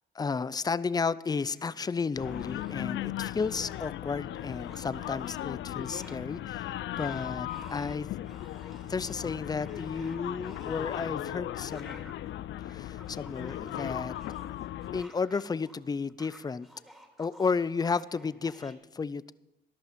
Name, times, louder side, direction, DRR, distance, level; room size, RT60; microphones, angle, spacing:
voice 1, 0.1-8.1 8.9-12.1 12.6-14.2 14.9-16.7 17.2-19.3, left 5 dB, 20° left, 18 dB, 0.4 m, -33 dB
sound 1, 1.3-1.9 2.2-3.0 3.2-3.9 4.3-5.5 5.8-6.5 6.9-15.8 16.0-18.7, equal, ahead, 2.7 m, -54 dB
sound 2, 2.2-15.0, left 13 dB, 70° left, 0.5 m, -37 dB
14.0 x 11.0 x 5.2 m, 0.93 s
cardioid pair, 90°, 20 cm